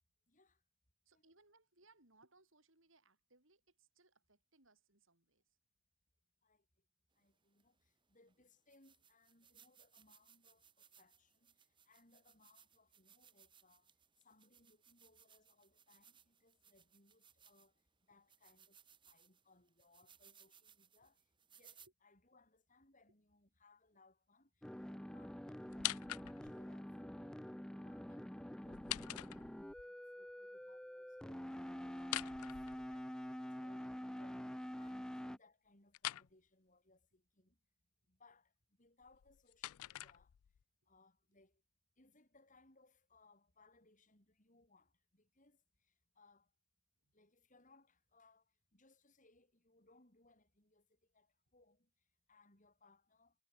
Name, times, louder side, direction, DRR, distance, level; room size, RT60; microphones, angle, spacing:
voice 1, 0.3-0.6 1.1-1.2 6.4-6.6 7.2-13.9 14.2-17.7 18.1-21.2 21.5-27.4 27.7-37.6 38.1-38.5 38.8-40.3 40.9-41.6 42.0-46.5 47.1-51.9 52.3-53.3, left 3 dB, 35° left, 5.0 m, -70 dB
voice 2, 1.1-5.4 21.8-21.9 47.0-47.1, right 3 dB, 60° right, 5.7 m, -70 dB
sound 1, 7.6-7.7 8.3-8.4 8.7-17.8 18.3-21.9, right 8 dB, 20° right, 5.8 m, -67 dB
sound 2, 24.6-35.4, equal, 5° left, 0.3 m, -47 dB
sound 3, 25.7-26.7 28.6-29.9 32.0-33.3 35.9-36.3 39.0-40.6, left 16 dB, 90° left, 0.4 m, -44 dB
head